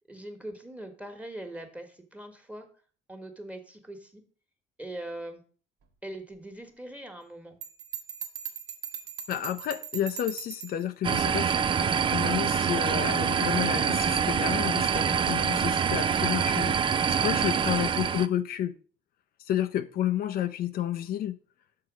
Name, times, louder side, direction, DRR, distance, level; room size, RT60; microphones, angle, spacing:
voice 1, 0.1-2.7 3.1-4.2 4.8-5.4 6.0-7.6, right 1 dB, 10° right, 1.5 m, -41 dB
Bell, 7.6-10.8, right 8 dB, 75° right, 1.3 m, -39 dB
voice 2, 9.3-18.8 19.4-21.4, left 11 dB, 60° left, 0.6 m, -31 dB
sound 1, 11.0-18.3, right 7 dB, 30° right, 0.4 m, -25 dB
6.6 x 4.3 x 6.2 m
cardioid pair, 110°, 17 cm